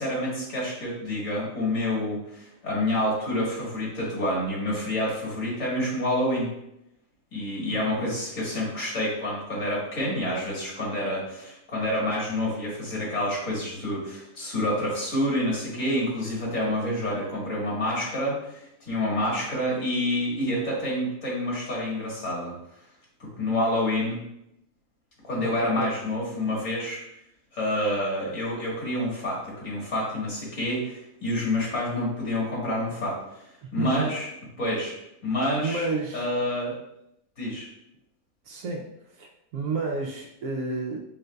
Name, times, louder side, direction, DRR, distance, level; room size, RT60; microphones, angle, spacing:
voice 1, 0.0-6.5 7.3-22.5 23.2-24.2 25.3-27.0 27.5-33.4 33.7-34.3 34.6-34.9 35.2-35.9 36.1-36.8 37.4-37.7, left 1 dB, 65° left, -4 dB, 1.9 m, -28 dB
voice 2, 7.7-8.4 25.4-25.9 33.8-34.1 35.6-36.2 38.4-38.9 39.1-41.0, right 3 dB, 85° right, -1 dB, 1.1 m, -31 dB
4.8 x 3.8 x 2.2 m, 0.81 s
omnidirectional pair, 1.5 m